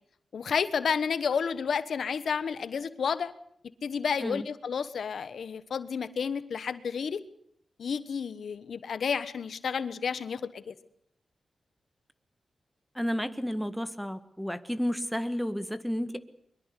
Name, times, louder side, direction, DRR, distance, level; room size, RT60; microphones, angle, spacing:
voice 1, 0.3-3.3 3.8-7.2 7.8-10.7, left 6 dB, 75° left, 14 dB, 1.1 m, -31 dB
voice 2, 13.0-16.2, equal, ahead, 10 dB, 1.8 m, -31 dB
23.0 x 22.5 x 8.3 m, 0.68 s
cardioid pair, 85°, 0 cm